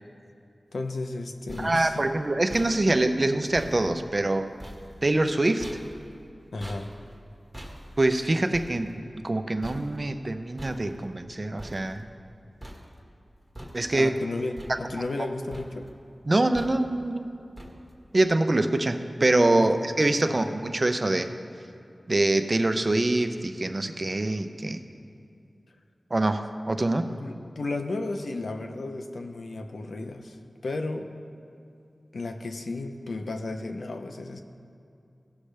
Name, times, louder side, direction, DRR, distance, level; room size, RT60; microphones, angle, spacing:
voice 1, 0.7-2.0 6.5-7.0 13.9-15.9 19.6-19.7 20.3-20.4 27.1-30.4 30.6-31.1 32.1-34.4, left 2 dB, 80° left, 5 dB, 0.7 m, -33 dB
sound 1, 1.1-12.3 12.6-13.2 13.5-14.2 14.6-15.2 15.5-16.0 16.5-17.1 17.6-18.1, equal, 10° right, 1.7 m, -46 dB
voice 2, 1.6-4.5 5.0-5.7 8.0-12.1 13.7-14.1 16.3-17.4 18.1-21.3 22.1-24.8 26.1-27.1, right 2 dB, 40° right, 8 dB, 0.6 m, -24 dB
16.5 x 6.4 x 3.4 m, 2.6 s
wide cardioid pair, 50°, 0 cm